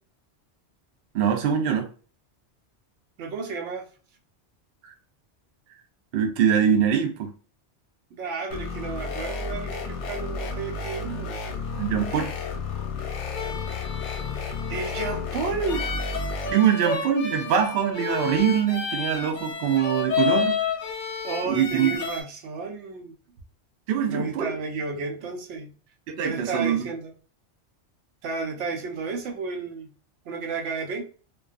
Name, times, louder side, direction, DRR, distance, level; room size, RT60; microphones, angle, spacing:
voice 1, 1.1-1.9 4.8-4.9 6.1-7.3 11.8-12.4 16.5-20.5 21.5-22.0 23.9-24.5 26.1-26.9, right 8 dB, 65° right, 0.7 m, -23 dB
voice 2, 3.2-3.9 8.1-11.4 14.7-15.8 21.2-23.2 24.1-25.7 26.2-27.1 28.2-29.9 30.3-31.0, right 4 dB, 85° right, 1.0 m, -32 dB
sound 1, 8.5-16.5, left 4 dB, 90° left, 0.9 m, -32 dB
sound 2, 13.3-22.2, left 6 dB, 55° left, 0.6 m, -30 dB
2.3 x 2.3 x 2.3 m
omnidirectional pair, 1.2 m